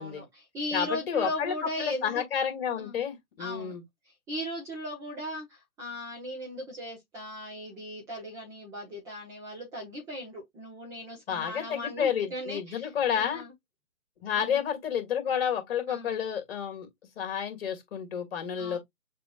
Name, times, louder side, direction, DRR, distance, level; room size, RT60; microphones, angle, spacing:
voice 1, 0.0-2.3 2.8-3.0 3.4-3.7 4.3-13.5 14.3-14.6 15.9-16.2 18.6-18.8, equal, 5° right, 0.8 m, -38 dB
voice 2, 0.7-3.8 11.3-13.4 14.2-16.9 17.2-18.8, left 8 dB, 40° left, 2.3 m, -30 dB
6.7 x 2.9 x 2.3 m
figure-of-eight pair, 140°, 44 cm